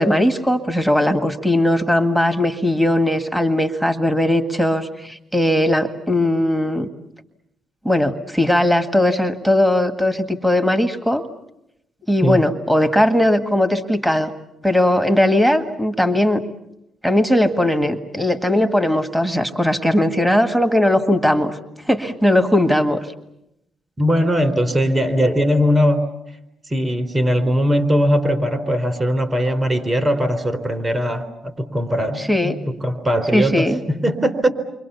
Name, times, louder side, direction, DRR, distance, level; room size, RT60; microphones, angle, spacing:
voice 1, 0.0-6.9 7.9-11.2 12.1-14.3 14.6-16.4 17.0-21.6 21.9-23.0 32.2-32.6 33.3-33.8, left 1 dB, 5° right, 8 dB, 1.8 m, -18 dB
voice 2, 24.0-26.1 26.7-32.5 32.8-34.5, equal, 25° right, 7 dB, 3.8 m, -19 dB
29.5 x 24.5 x 7.0 m, 0.84 s
cardioid pair, 90°, 0 cm